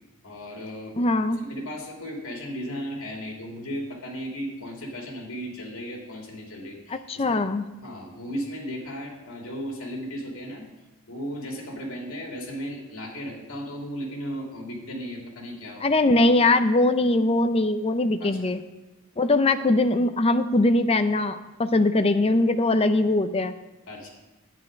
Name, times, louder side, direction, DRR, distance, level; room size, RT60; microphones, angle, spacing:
voice 1, 0.2-1.0 1.4-7.4 7.8-10.6 11.1-16.0 18.2-18.4 23.9-24.1, equal, 70° left, 0 dB, 2.8 m, -35 dB
voice 2, 1.0-1.4 6.9-7.6 15.8-18.6 19.2-23.5, left 2 dB, 30° left, 9 dB, 0.6 m, -21 dB
11.0 x 9.7 x 5.2 m, 1.0 s
head